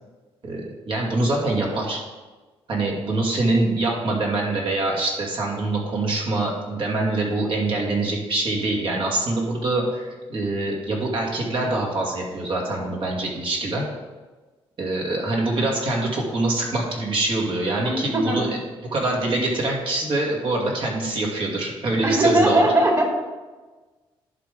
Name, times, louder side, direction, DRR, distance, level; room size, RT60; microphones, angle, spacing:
voice 1, 0.4-2.0 2.7-13.8 14.8-18.6 18.9-22.7, right 2 dB, 55° right, -2 dB, 2.4 m, -24 dB
voice 2, 17.8-18.4 22.0-23.1, right 1 dB, 35° right, 0 dB, 2.5 m, -19 dB
11.0 x 3.7 x 5.1 m, 1.3 s
cardioid pair, 75°, 10 cm